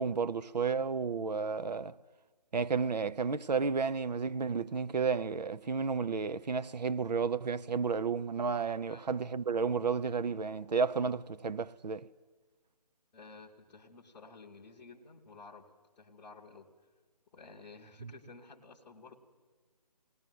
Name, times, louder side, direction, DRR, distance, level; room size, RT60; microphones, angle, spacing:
voice 1, 0.0-2.0 2.5-12.1, right 5 dB, 80° right, 0.6 m, -32 dB
voice 2, 13.1-15.7 16.0-16.7 17.3-19.2, left 4 dB, 5° left, 0.8 m, -53 dB
20.0 x 18.5 x 7.7 m
figure-of-eight pair, 165°, 21 cm